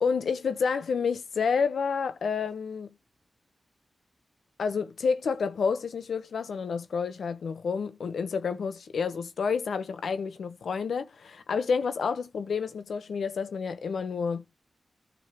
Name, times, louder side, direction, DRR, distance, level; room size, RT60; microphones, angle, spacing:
voice 1, 0.0-2.9 4.6-14.4, left 5 dB, 85° left, 1.0 m, -29 dB
15.0 x 5.6 x 2.9 m
cardioid pair, 60°, 0 cm